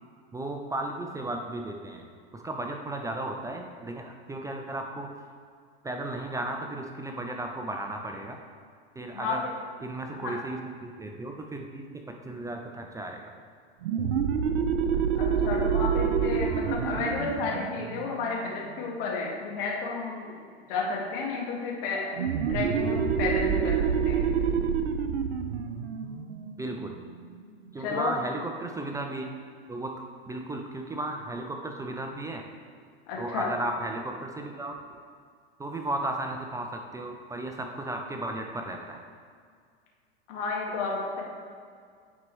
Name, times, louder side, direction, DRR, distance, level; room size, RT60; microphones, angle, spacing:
voice 1, 0.3-2.0 2.3-5.1 5.8-8.4 9.0-9.4 9.8-13.2 26.6-27.0 27.7-29.3 29.7-32.4 33.2-34.8 35.6-39.0, right 2 dB, 10° right, 3 dB, 0.4 m, -35 dB
sound 1, 13.8-19.1 22.2-27.5, right 7 dB, 85° right, 0.6 m, -28 dB
voice 2, 15.2-20.4 20.7-22.2 22.5-24.3 27.8-28.1 33.1-33.5 40.3-41.2, left 4 dB, 60° left, -2 dB, 1.7 m, -32 dB
9.4 x 4.5 x 3.2 m, 2.1 s
hypercardioid pair, 100°, 31 cm